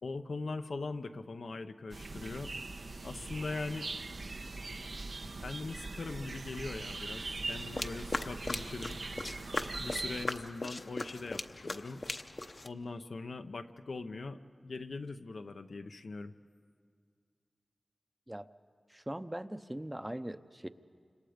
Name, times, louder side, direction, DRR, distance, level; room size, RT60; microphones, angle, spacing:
voice 1, 0.0-2.5 3.0-3.9 5.4-9.0 9.8-12.0 12.6-16.3, left 3 dB, 90° left, 7 dB, 0.8 m, -41 dB
sound 1, 1.9-10.3, right 3 dB, 75° right, 0.9 m, -41 dB
sound 2, 7.5-12.7, left 2 dB, 50° left, 0.8 m, -39 dB
voice 2, 18.9-20.7, right 1 dB, 15° right, 11 dB, 0.7 m, -40 dB
29.0 x 26.5 x 5.1 m, 2.1 s
wide cardioid pair, 65°, 0 cm